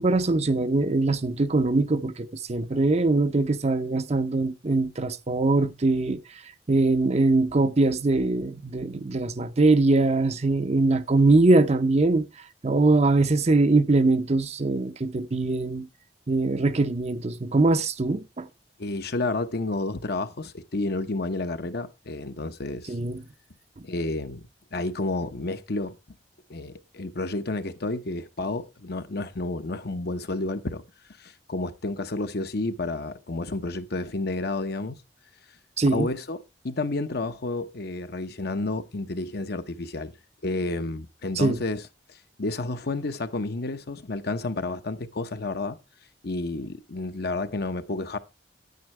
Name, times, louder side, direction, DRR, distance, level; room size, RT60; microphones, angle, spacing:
voice 1, 0.0-6.2 6.7-12.3 12.6-15.9 16.3-18.5 22.9-23.2 35.8-36.1 41.4-41.6, right 2 dB, 35° right, 0.6 m, -22 dB
voice 2, 18.8-23.0 23.8-26.0 26.5-30.8 31.2-35.0 35.9-36.4 36.6-40.1 40.4-41.8 42.1-45.8 46.2-48.2, left 2 dB, 60° left, 0.9 m, -30 dB
9.8 x 9.4 x 3.3 m
head